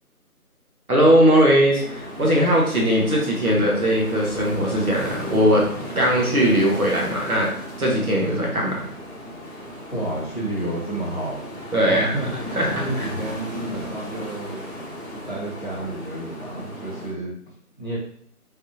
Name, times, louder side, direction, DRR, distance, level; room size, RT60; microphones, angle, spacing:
voice 1, 0.9-5.7 5.9-7.5 7.8-8.8 11.7-12.1 12.5-12.7, equal, 65° right, -3 dB, 1.6 m, -19 dB
sound 1, 1.8-17.1, equal, 25° right, 1.2 m, -35 dB
voice 2, 9.9-11.5 11.8-12.3 12.7-14.6 15.1-17.3 17.8-18.0, right 1 dB, 30° left, -6 dB, 1.2 m, -30 dB
4.0 x 3.4 x 2.6 m, 0.63 s
figure-of-eight pair, 165°, 46 cm